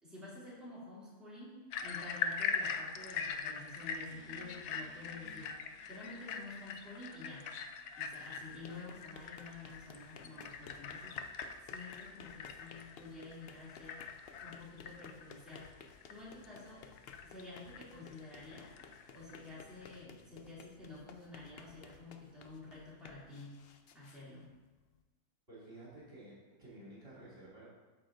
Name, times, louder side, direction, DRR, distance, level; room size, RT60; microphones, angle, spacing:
voice 1, 0.0-5.5 5.8-7.5 8.0-11.2 11.6-14.0 14.4-15.7 16.1-16.8 17.2-18.7 19.1-23.6 23.9-24.5, left 2 dB, ahead, -9 dB, 2.7 m, -50 dB
sound 1, 1.7-20.0, left 6 dB, 85° left, 1.1 m, -43 dB
sound 2, 4.1-8.2, right 1 dB, 15° left, 0.3 m, -62 dB
sound 3, 8.0-25.0, left 6 dB, 65° left, 0.6 m, -57 dB
voice 2, 25.5-27.6, right 1 dB, 40° right, -8 dB, 2.6 m, -53 dB
12.5 x 4.8 x 3.7 m, 1.3 s
omnidirectional pair, 1.6 m